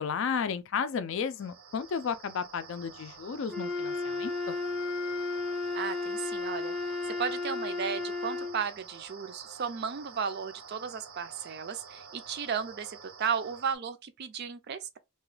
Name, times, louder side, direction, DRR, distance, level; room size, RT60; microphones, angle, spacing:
voice 1, 0.0-4.6, left 6 dB, 60° left, 0.4 m, -33 dB
sound 1, 1.2-13.8, right 5 dB, 70° right, 0.8 m, -49 dB
Wind instrument woodwind instrument, 3.5-8.6, left 3 dB, ahead, 0.6 m, -33 dB
voice 2, 5.7-6.8 7.1-15.0, right 6 dB, 50° right, 0.4 m, -34 dB
2.9 x 2.3 x 3.1 m
head